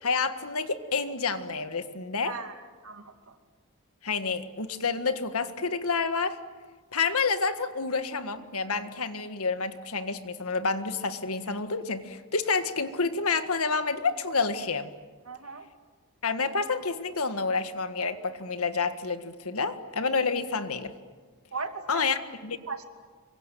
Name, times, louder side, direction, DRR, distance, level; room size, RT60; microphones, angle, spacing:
voice 1, 0.0-2.3 4.0-6.4 6.9-14.9 16.2-20.9 21.9-22.6, left 4 dB, 75° left, 10 dB, 1.7 m, -29 dB
voice 2, 2.2-3.4 15.2-15.7 21.5-22.1 22.7-22.9, right 4 dB, 70° right, 6 dB, 2.6 m, -38 dB
27.0 x 23.5 x 9.3 m, 1.5 s
head